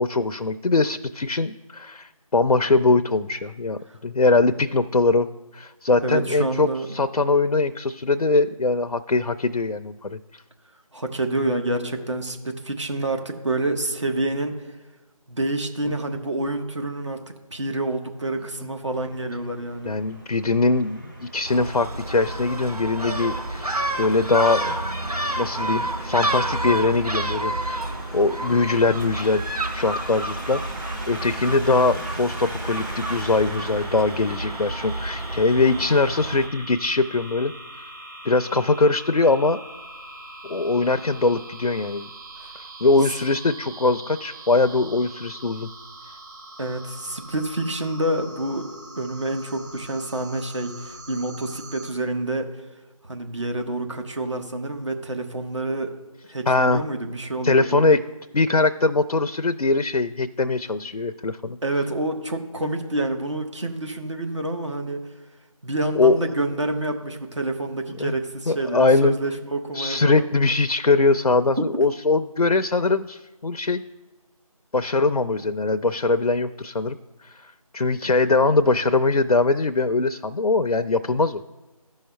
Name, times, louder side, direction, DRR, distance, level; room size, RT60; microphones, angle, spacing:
voice 1, 0.0-5.3 5.5-10.4 15.9-16.0 18.6-18.7 19.9-24.8 25.4-27.9 28.1-29.4 29.7-37.5 37.8-37.9 38.2-39.6 40.4-42.1 42.8-45.7 46.0-46.2 56.5-56.8 57.4-58.0 58.3-61.6 65.9-66.3 68.0-68.1 68.5-69.1 69.7-73.8 74.7-77.0 77.2-81.4, left 3 dB, 90° left, 9 dB, 0.5 m, -22 dB
voice 2, 6.0-6.9 10.9-14.5 15.3-20.0 42.4-42.5 46.6-52.5 53.0-56.0 56.3-57.9 61.6-65.0 65.6-70.3 71.6-71.7, right 2 dB, 50° right, 4 dB, 1.2 m, -28 dB
sound 1, 18.9-34.5, right 1 dB, ahead, 0.7 m, -40 dB
Gull seagull, 21.5-36.5, right 1 dB, 90° right, 1.0 m, -29 dB
sound 2, 32.7-51.9, right 1 dB, 30° right, 1.4 m, -42 dB
15.0 x 5.6 x 2.2 m, 1.2 s
figure-of-eight pair, 165°, 19 cm